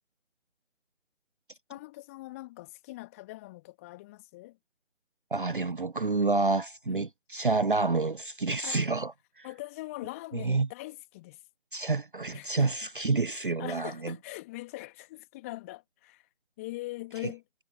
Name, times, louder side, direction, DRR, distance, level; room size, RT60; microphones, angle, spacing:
voice 1, 1.7-4.6 6.9-7.1 8.6-8.9 9.4-11.4 12.3-12.9 13.3-16.3 16.6-17.4, left 19 dB, 10° left, 2.2 m, -42 dB
voice 2, 5.3-9.5 10.3-10.7 11.7-14.1 17.2-17.3, right 3 dB, 40° right, 0.9 m, -28 dB
figure-of-eight pair, 155°, 40 cm